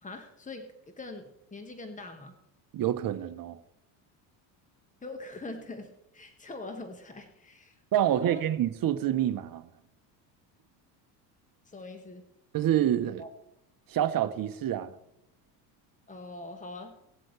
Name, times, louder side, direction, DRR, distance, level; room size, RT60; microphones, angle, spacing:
voice 1, 0.0-2.3 5.0-8.4 11.7-12.2 13.2-13.3 16.1-17.0, left 2 dB, 15° left, 1.7 m, -43 dB
voice 2, 2.7-3.6 7.9-9.7 12.5-13.2 13.9-14.9, right 11 dB, 45° right, 1.1 m, -27 dB
19.0 x 7.7 x 3.4 m
supercardioid pair, 85°, 49 cm